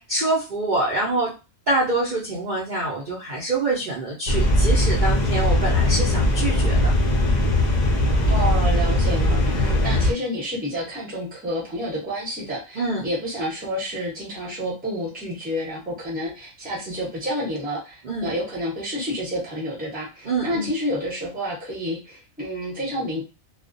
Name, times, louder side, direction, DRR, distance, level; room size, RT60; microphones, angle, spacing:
voice 1, 0.0-1.3 1.7-6.9 12.7-13.1 18.0-18.3 20.2-20.7, right 2 dB, 45° right, -5 dB, 0.6 m, -25 dB
sound 1, 4.3-10.1, left 1 dB, 55° left, 0.5 m, -20 dB
voice 2, 8.3-23.2, equal, 10° right, -4 dB, 0.7 m, -29 dB
2.3 x 2.0 x 2.6 m, 0.29 s
omnidirectional pair, 1.4 m